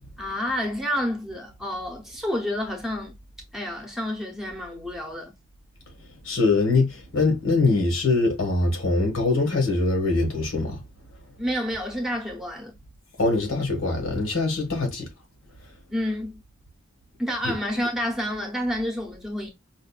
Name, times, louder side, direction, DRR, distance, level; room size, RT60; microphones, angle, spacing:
voice 1, 0.2-3.2 3.5-5.3 11.4-12.7 15.9-16.4 17.2-19.5, equal, ahead, 0.8 m, -29 dB
voice 2, 6.2-10.8 13.2-15.1 17.4-17.5, left 3 dB, 85° left, 1.6 m, -23 dB
5.0 x 2.5 x 2.4 m
head